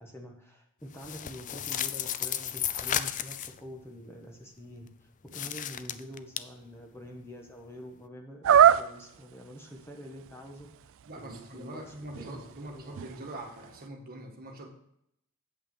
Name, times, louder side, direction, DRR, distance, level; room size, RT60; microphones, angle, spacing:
voice 1, 0.0-11.8 12.1-13.1, equal, 10° left, 1 dB, 1.2 m, -46 dB
sound 1, 0.9-3.6 5.3-6.4, left 10 dB, 35° left, 0.4 m, -33 dB
sound 2, 8.4-9.2 9.8-9.9 10.3-13.8, right 9 dB, 65° right, 0.4 m, -25 dB
voice 2, 11.1-14.7, right 1 dB, 45° right, 1 dB, 1.7 m, -43 dB
8.4 x 5.6 x 6.2 m, 0.74 s
head